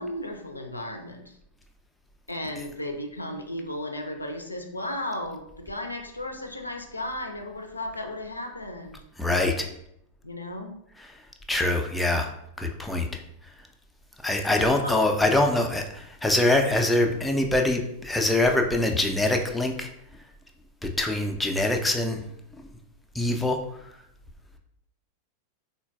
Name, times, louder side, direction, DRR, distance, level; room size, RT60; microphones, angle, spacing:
voice 1, 0.0-1.4 2.3-9.0 10.2-10.7 14.8-14.9, left 1 dB, 85° left, 4 dB, 0.3 m, -35 dB
voice 2, 9.2-9.7 11.0-11.1 11.5-12.3 12.6-13.2 14.2-19.9 20.8-22.2 22.5-22.6 23.1-23.6, left 2 dB, 5° left, 2 dB, 0.3 m, -24 dB
3.8 x 2.2 x 2.2 m, 0.77 s
figure-of-eight pair, 90°, 0 cm